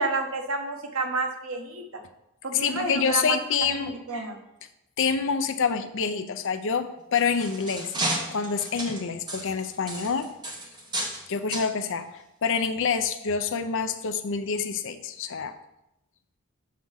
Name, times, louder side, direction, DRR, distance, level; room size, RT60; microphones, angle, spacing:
voice 1, 0.0-1.8 2.4-3.4 3.8-4.4, right 3 dB, 75° right, 4 dB, 1.0 m, -29 dB
voice 2, 2.5-3.9 5.0-7.9 8.3-10.3 11.3-15.5, left 6 dB, 60° left, 9 dB, 0.5 m, -27 dB
sound 1, 7.0-11.2 11.5-11.7 12.4-12.6 13.1-13.2, right 1 dB, 20° right, 1.3 m, -33 dB
7.4 x 3.6 x 5.6 m, 0.87 s
head